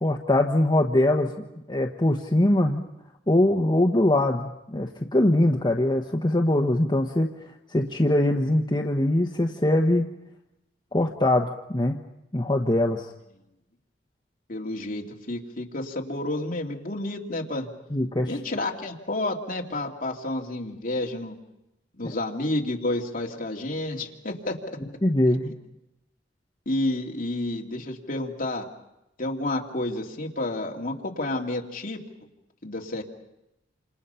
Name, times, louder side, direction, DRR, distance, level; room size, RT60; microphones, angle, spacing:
voice 1, 0.0-1.3 1.7-2.8 3.3-7.3 7.7-10.1 10.9-12.0 12.3-13.1 17.9-18.3 22.0-22.1 25.0-25.4, left 1 dB, 25° left, 2 dB, 1.1 m, -22 dB
voice 2, 14.5-17.7 18.3-21.4 22.0-24.8 26.7-28.7 29.2-32.0 32.6-33.0, left 2 dB, 50° left, 0 dB, 2.6 m, -30 dB
28.0 x 27.0 x 5.7 m, 0.91 s
head